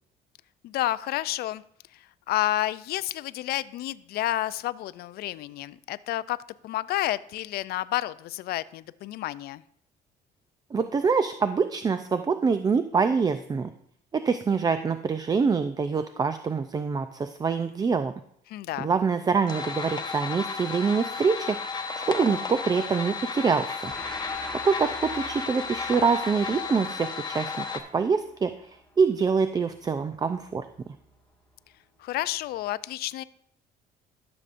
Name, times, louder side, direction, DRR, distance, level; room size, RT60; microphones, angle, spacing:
voice 1, 0.6-1.6 1.9-6.4 6.6-9.6 18.5-18.9 32.0-33.2, left 15 dB, 65° left, 17 dB, 0.4 m, -30 dB
voice 2, 10.7-13.7 14.1-18.1 18.8-21.6 22.1-23.9 24.6-30.7, right 5 dB, 25° right, 10 dB, 0.4 m, -25 dB
sound 1, 19.5-27.8, left 5 dB, 25° left, 1.0 m, -33 dB
Gong, 23.8-30.8, equal, 5° left, 1.7 m, -44 dB
13.0 x 6.9 x 2.5 m, 0.68 s
cardioid pair, 110°, 17 cm